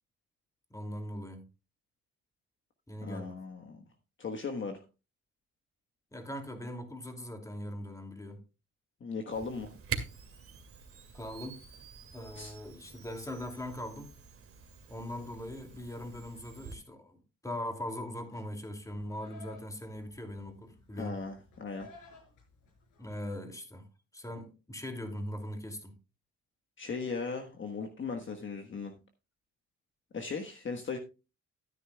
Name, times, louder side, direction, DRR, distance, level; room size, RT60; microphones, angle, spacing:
voice 1, 0.7-1.5 2.9-3.4 6.1-8.4 11.1-11.6 12.1-14.1 14.9-21.2 23.0-23.9 24.1-26.0, left 1 dB, 10° left, 2.5 m, -40 dB
voice 2, 3.0-3.8 4.2-4.8 9.0-9.8 12.3-12.5 21.0-21.9 26.8-28.9 30.1-31.0, left 4 dB, 40° left, 1.3 m, -37 dB
Camera, 9.3-16.8, right 6 dB, 50° right, 2.1 m, -45 dB
Livestock farm animals working animals, 18.3-23.4, left 2 dB, 85° left, 5.5 m, -57 dB
13.5 x 9.6 x 2.3 m
cardioid pair, 90°, 30 cm